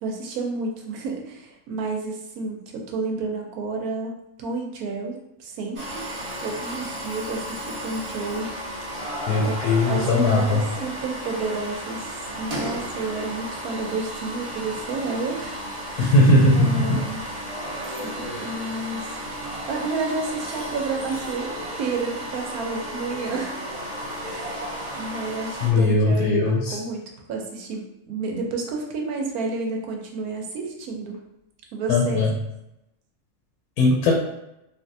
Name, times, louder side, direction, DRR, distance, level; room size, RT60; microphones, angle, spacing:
voice 1, 0.0-6.0 6.4-8.5 9.4-9.6 9.8-12.1 12.4-15.6 15.9-16.2 16.5-17.2 17.8-19.1 19.7-21.5 21.8-23.6 24.2-24.7 24.9-31.2 31.7-32.2, right 3 dB, 90° right, 1 dB, 1.1 m, -30 dB
sound 1, 5.8-25.7, equal, 50° right, 0.4 m, -33 dB
voice 2, 9.3-10.6 16.0-17.0 25.6-26.8 31.9-32.3 33.8-34.1, left 2 dB, 85° left, -2 dB, 1.1 m, -19 dB
3.4 x 2.6 x 2.6 m, 0.88 s
omnidirectional pair, 1.5 m